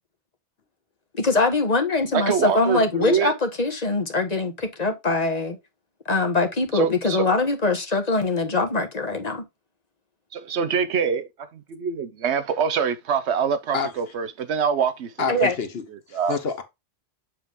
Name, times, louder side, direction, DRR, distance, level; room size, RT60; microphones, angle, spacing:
voice 1, 1.1-5.6 6.0-9.4 15.3-15.5, left 3 dB, 40° left, 1.4 m, -23 dB
voice 2, 2.1-3.3 6.7-7.3 10.3-15.5 16.1-16.4, right 6 dB, 85° right, 1.1 m, -25 dB
voice 3, 15.2-16.6, left 5 dB, 65° left, 1.2 m, -28 dB
7.6 x 3.6 x 3.7 m
omnidirectional pair, 1.1 m